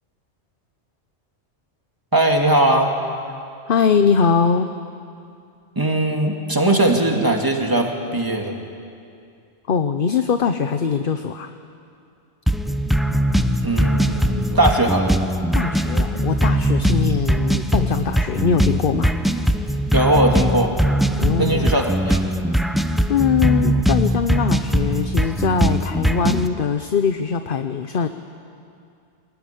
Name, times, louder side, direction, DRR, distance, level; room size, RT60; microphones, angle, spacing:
voice 1, 2.1-2.9 5.8-8.6 13.6-15.1 19.9-20.7 21.4-22.2, right 1 dB, 20° right, 1 dB, 2.5 m, -19 dB
voice 2, 3.7-4.7 9.7-11.5 15.5-19.2 21.2-21.7 23.1-28.1, left 6 dB, 55° left, 8 dB, 1.0 m, -21 dB
sound 1, 12.5-26.5, equal, ahead, 0.7 m, -20 dB
24.0 x 19.5 x 9.9 m, 2.4 s
omnidirectional pair, 1.2 m